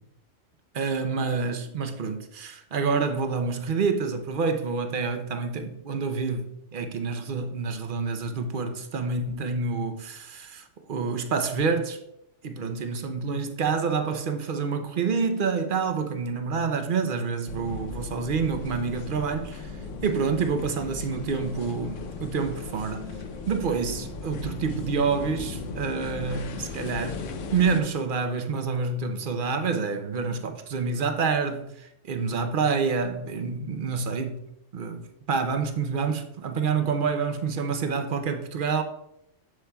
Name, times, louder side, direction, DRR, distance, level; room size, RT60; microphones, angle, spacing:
voice 1, 0.7-12.0 12.4-19.7 20.0-23.0 23.5-27.2 27.5-34.4 34.7-38.8, right 5 dB, 50° right, 0.8 m, -28 dB
sound 1, 17.5-27.8, left 4 dB, 85° left, 1.1 m, -37 dB
7.8 x 7.1 x 2.3 m
omnidirectional pair, 1.3 m